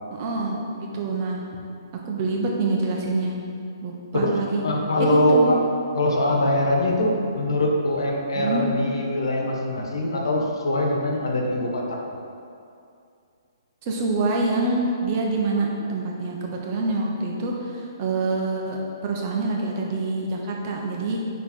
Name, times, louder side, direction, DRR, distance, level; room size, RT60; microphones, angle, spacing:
voice 1, 0.1-1.4 2.0-3.3 3.8-4.6 5.0-5.5 8.4-8.7 13.9-17.5 18.0-21.2, right 3 dB, 35° right, -1 dB, 1.0 m, -26 dB
voice 2, 4.1-5.6 5.9-12.0, left 1 dB, 90° left, 0 dB, 1.3 m, -23 dB
9.8 x 3.4 x 4.4 m, 2.5 s
hypercardioid pair, 155°, 2 cm